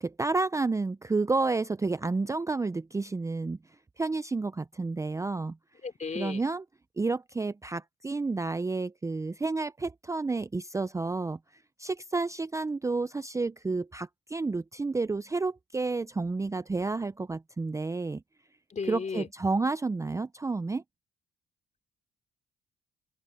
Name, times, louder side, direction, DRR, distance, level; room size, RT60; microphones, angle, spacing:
voice 1, 0.0-3.6 4.0-5.6 6.1-6.6 7.0-11.4 11.8-18.2 18.9-20.8, right 3 dB, 15° right, 0.5 m, -30 dB
voice 2, 5.8-6.4 18.7-19.3, left 5 dB, 35° left, 3.5 m, -35 dB
open air
cardioid pair, 90°, 20 cm